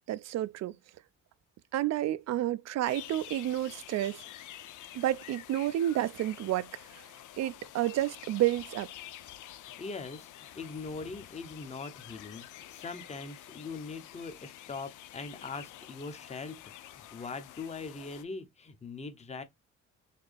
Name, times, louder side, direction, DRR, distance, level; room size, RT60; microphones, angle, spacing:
voice 1, 0.1-0.7 1.7-4.2 4.9-6.7 7.4-8.9, right 13 dB, 60° right, 0.4 m, -30 dB
sound 1, 2.8-18.2, left 12 dB, 80° left, 0.6 m, -49 dB
voice 2, 9.8-10.3 10.5-16.6 16.8-19.4, left 4 dB, 20° left, 0.8 m, -41 dB
4.2 x 2.8 x 3.3 m
cardioid pair, 90°, 30 cm